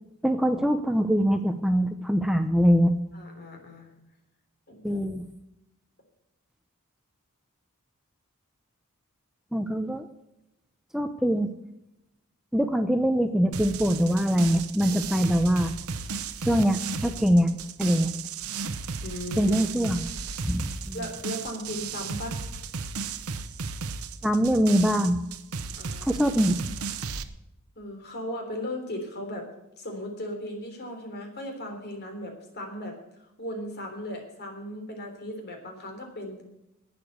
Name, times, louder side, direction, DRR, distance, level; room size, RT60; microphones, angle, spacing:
voice 1, 0.2-2.9 4.8-5.3 9.5-10.1 10.9-11.5 12.5-15.7 16.5-17.5 17.8-18.1 19.4-20.1 20.4-21.0 24.2-25.2 26.0-26.6, equal, ahead, 7 dB, 0.6 m, -23 dB
voice 2, 3.1-3.9 4.7-5.1 19.0-19.6 20.9-22.4 25.7-26.1 27.8-29.5 29.8-33.0 33.4-36.4, left 1 dB, 45° left, 3 dB, 3.5 m, -37 dB
sound 1, 13.5-27.2, right 5 dB, 70° right, 0.9 m, -35 dB
12.0 x 9.0 x 8.0 m, 0.88 s
head